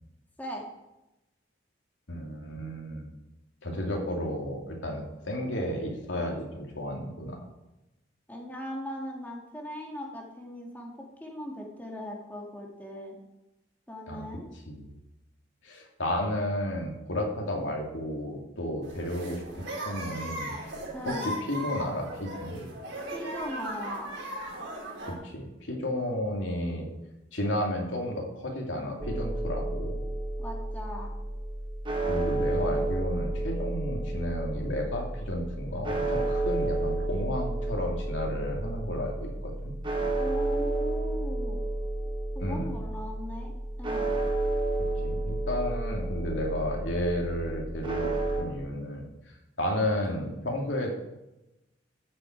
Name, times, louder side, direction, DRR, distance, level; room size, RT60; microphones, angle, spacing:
voice 1, 2.1-3.1 3.6-7.4 14.1-14.2 14.7-14.9 15.6-20.5 21.1-22.7 25.1-26.9 27.3-30.0 32.1-39.7 42.4-42.7 45.0-49.1 49.6-50.9, left 1 dB, 85° left, 0 dB, 2.7 m, -32 dB
voice 2, 8.3-10.9 11.2-13.2 13.9-14.5 20.9-21.3 23.1-24.1 30.4-31.1 40.2-41.6 42.3-43.5 43.8-44.1, left 1 dB, 10° left, -1 dB, 2.1 m, -39 dB
sound 1, 18.8-25.1, right 1 dB, 70° right, 4.8 m, -37 dB
sound 2, 29.0-48.4, right 2 dB, 25° right, 1.5 m, -31 dB
14.0 x 7.9 x 4.7 m, 0.94 s
head